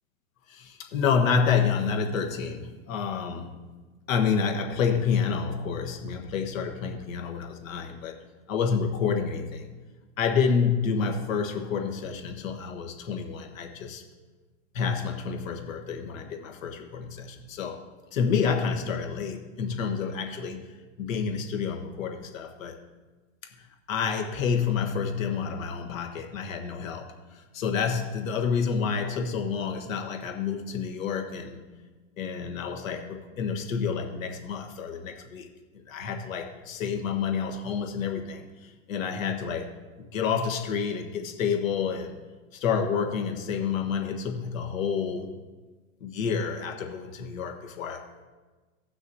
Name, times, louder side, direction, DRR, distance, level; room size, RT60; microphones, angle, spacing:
voice 1, 0.5-3.6 4.1-8.2 8.5-9.7 10.2-14.0 14.7-17.8 18.1-20.6 21.0-22.8 23.6-31.6 32.2-35.5 35.9-39.7 40.1-42.1 42.5-45.3 46.0-48.2, left 6 dB, 80° left, 3 dB, 1.3 m, -29 dB
17.0 x 6.2 x 2.7 m, 1.3 s
hypercardioid pair, 125°, 39 cm